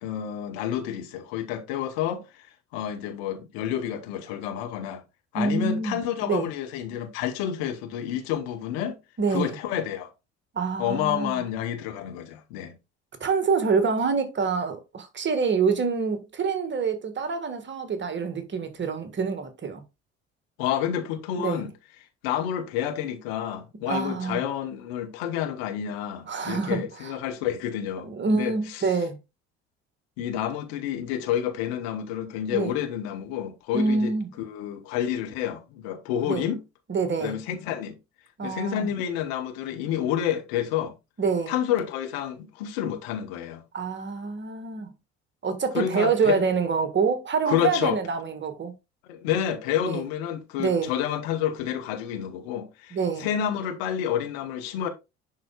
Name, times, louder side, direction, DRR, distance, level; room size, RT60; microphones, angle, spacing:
voice 1, 0.0-2.5 2.7-5.0 5.3-9.0 9.3-10.1 10.8-12.8 20.6-21.7 22.2-29.0 30.2-36.6 37.2-38.0 38.4-40.9 41.5-43.6 45.7-46.4 47.5-48.0 49.0-54.9, left 10 dB, 65° left, 1.1 m, -29 dB
voice 2, 5.3-6.5 9.2-9.5 10.5-11.4 13.2-19.8 21.4-21.6 23.9-24.4 26.3-26.8 28.0-29.1 32.5-32.8 33.7-34.3 36.2-36.5 36.9-37.4 38.4-38.9 41.2-41.5 43.7-44.9 45.4-48.7 49.8-50.0 50.6-50.9 52.9-53.3, right 5 dB, 35° right, 1.5 m, -26 dB
10.5 x 4.0 x 2.3 m
figure-of-eight pair, 55°, 34 cm